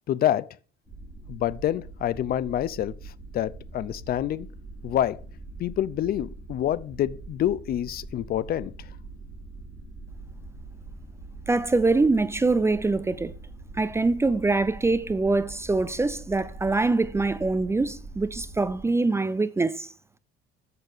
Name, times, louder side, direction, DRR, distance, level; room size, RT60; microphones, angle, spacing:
voice 1, 0.1-0.5 1.3-2.9 3.3-4.5 4.8-5.2 5.6-8.7, left 11 dB, 45° left, 0.5 m, -27 dB
sound 1, 0.9-18.8, right 2 dB, 10° left, 4.7 m, -43 dB
voice 2, 11.5-13.3 13.8-19.9, right 3 dB, 15° right, 0.4 m, -24 dB
7.0 x 6.7 x 6.5 m
cardioid pair, 125°, 21 cm